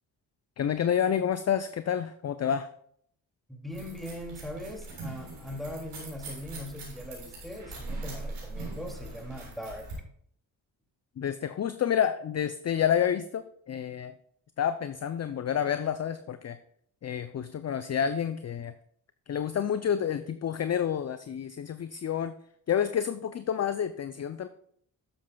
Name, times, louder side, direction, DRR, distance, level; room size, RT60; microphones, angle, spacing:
voice 1, 0.6-2.7 11.2-14.1 14.6-16.6 17.0-18.7 19.3-22.3 22.7-24.5, left 8 dB, 35° left, 11 dB, 0.5 m, -29 dB
voice 2, 3.5-9.9, equal, ahead, 2 dB, 2.4 m, -40 dB
sound 1, 3.7-9.9, right 2 dB, 85° right, 3.9 m, -41 dB
11.5 x 7.6 x 2.3 m, 0.66 s
supercardioid pair, 45°, 49 cm